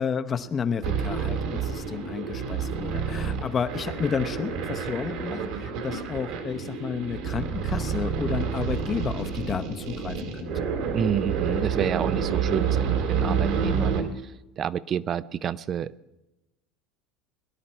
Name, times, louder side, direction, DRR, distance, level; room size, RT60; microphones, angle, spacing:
voice 1, 0.0-10.7, left 6 dB, 30° left, 10 dB, 0.8 m, -31 dB
sound 1, 0.8-14.0, right 6 dB, 70° right, 2.4 m, -29 dB
voice 2, 10.9-14.1 14.6-15.9, right 8 dB, 40° right, 18 dB, 0.5 m, -29 dB
22.0 x 11.0 x 4.3 m, 0.99 s
supercardioid pair, 120°, 0 cm